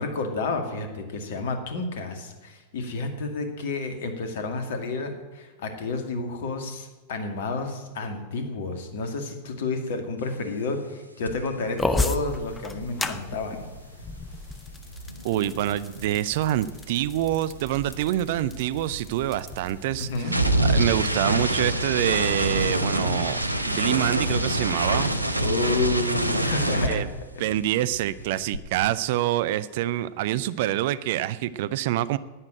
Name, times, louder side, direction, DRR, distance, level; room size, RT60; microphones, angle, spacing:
voice 1, 0.0-13.7 20.0-20.4 25.4-27.0 27.4-27.5, left 3 dB, 55° left, 5 dB, 2.2 m, -30 dB
sound 1, 11.2-11.5 11.7-16.1 16.4-27.7 27.9-28.6, right 1 dB, 85° right, 0.9 m, -27 dB
sound 2, 11.8-20.2, left 3 dB, 10° left, 0.9 m, -34 dB
voice 2, 15.2-20.3 20.6-23.4 23.7-25.4 26.9-27.1 27.4-32.2, right 13 dB, 50° right, 16 dB, 0.5 m, -26 dB
11.0 x 9.7 x 8.9 m, 1.3 s
figure-of-eight pair, 90°, 0 cm